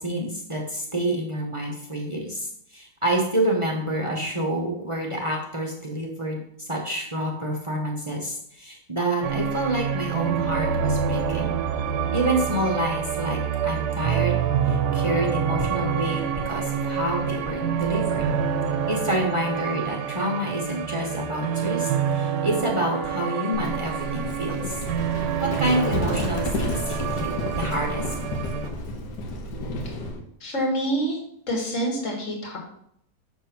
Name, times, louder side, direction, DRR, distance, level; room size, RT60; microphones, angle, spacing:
voice 1, 0.0-6.4 6.7-11.5 12.1-14.4 14.6-18.3 18.9-24.8 25.4-28.0, right 1 dB, 30° right, -1 dB, 0.6 m, -28 dB
sound 1, 9.2-28.7, right 7 dB, 90° right, 1.3 m, -27 dB
Livestock farm animals working animals, 23.5-30.2, left 1 dB, 80° left, 1.6 m, -31 dB
voice 2, 30.4-31.2 31.5-32.6, right 1 dB, 50° left, -1 dB, 1.8 m, -26 dB
6.3 x 3.3 x 5.8 m, 0.70 s
omnidirectional pair, 1.8 m